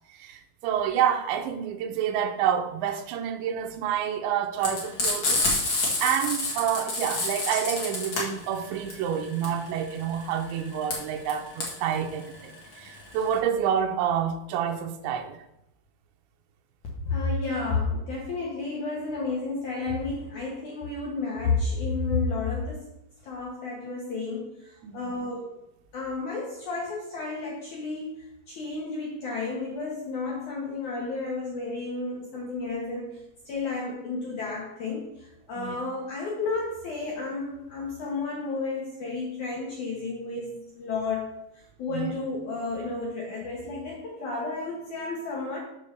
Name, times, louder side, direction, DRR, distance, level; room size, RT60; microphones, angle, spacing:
voice 1, 0.2-5.4 6.0-15.4 24.8-25.2 35.6-35.8 41.9-42.1, right 9 dB, 80° right, 3.0 m, -28 dB
Frying (food), 4.6-13.3, left 2 dB, 45° left, 1.5 m, -28 dB
voice 2, 17.0-22.9 23.2-25.6 25.9-33.2 33.4-41.5 41.8-45.6, left 3 dB, 85° left, 1.7 m, -31 dB
7.0 x 5.1 x 6.6 m
omnidirectional pair, 5.3 m